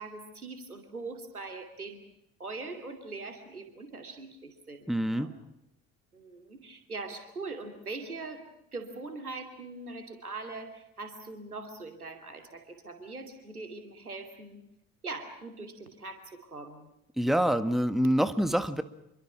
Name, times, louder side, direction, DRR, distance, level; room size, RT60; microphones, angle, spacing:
voice 1, 0.0-2.1 2.4-5.4 6.1-8.4 8.7-14.6 15.0-16.9, right 3 dB, 85° right, 6 dB, 2.8 m, -42 dB
voice 2, 4.9-5.3 17.2-18.8, equal, ahead, 12 dB, 1.5 m, -26 dB
27.0 x 24.0 x 6.0 m, 0.85 s
figure-of-eight pair, 55°, 43 cm